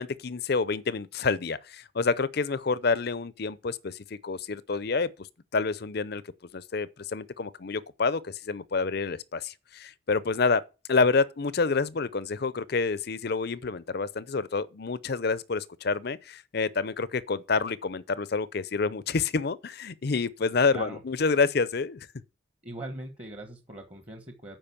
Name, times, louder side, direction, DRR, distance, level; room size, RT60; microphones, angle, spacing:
voice 1, 0.0-4.0 4.2-5.1 5.5-6.2 6.5-10.6 10.9-22.1, left 4 dB, 50° left, 0.6 m, -28 dB
voice 2, 22.6-24.6, right 2 dB, 30° right, 1.2 m, -40 dB
8.9 x 5.1 x 7.1 m
head